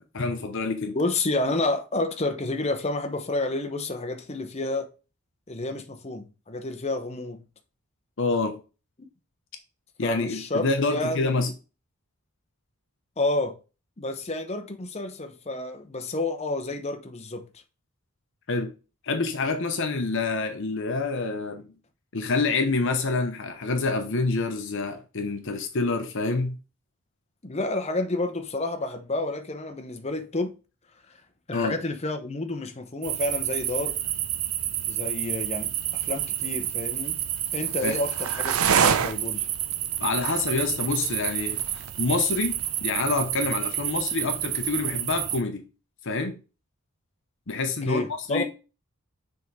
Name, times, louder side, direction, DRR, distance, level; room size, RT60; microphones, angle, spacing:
voice 1, 0.1-1.0 8.2-8.6 10.0-11.5 18.5-18.7 19.0-21.7 22.1-26.6 31.5-31.8 37.8-38.0 40.0-41.6 42.0-45.6 46.0-46.4 47.5-48.0 48.3-48.4, left 3 dB, 55° left, 0.8 m, -27 dB
voice 2, 0.9-4.9 5.5-7.4 10.0-11.5 13.2-13.6 14.0-17.5 27.4-30.5 31.1-31.2 31.5-34.0 34.9-37.2 37.5-39.5 47.8-48.4, left 2 dB, 30° left, 0.8 m, -30 dB
sound 1, 33.0-45.4, right 10 dB, 70° right, 0.6 m, -28 dB
6.7 x 3.6 x 4.7 m
head